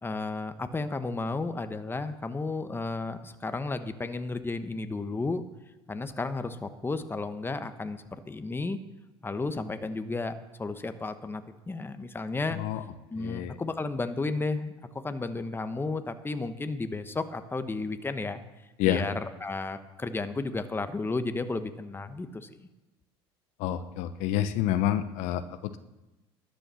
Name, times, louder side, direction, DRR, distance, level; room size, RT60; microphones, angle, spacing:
voice 1, 0.0-5.4 5.9-8.8 9.2-12.6 13.1-18.4 18.8-22.7, left 3 dB, 15° left, 10 dB, 1.1 m, -33 dB
voice 2, 12.5-12.8 13.2-13.6 18.8-19.0 23.6-25.8, left 12 dB, 70° left, 11 dB, 0.8 m, -28 dB
12.5 x 9.0 x 7.0 m, 1.0 s
hypercardioid pair, 75°, 13 cm